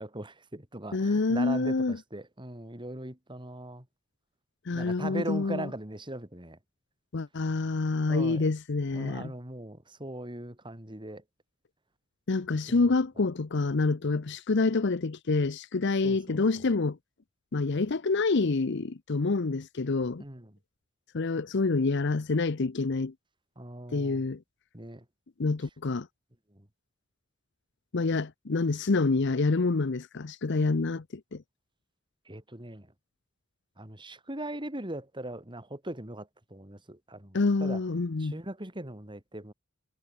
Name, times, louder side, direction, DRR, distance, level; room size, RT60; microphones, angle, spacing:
voice 1, 0.0-3.9 4.7-6.6 8.1-8.5 8.9-11.2 12.7-12.8 16.0-16.4 20.2-20.5 23.6-24.2 24.7-25.0 26.5-26.7 32.3-32.9 33.8-37.8 38.2-39.5, right 1 dB, 25° right, 3.8 m, -40 dB
voice 2, 0.9-2.0 4.7-5.7 7.1-9.3 12.3-17.0 17.5-20.2 21.1-23.1 23.9-24.4 25.4-26.1 27.9-31.4 37.3-38.4, left 3 dB, 60° left, 0.7 m, -27 dB
head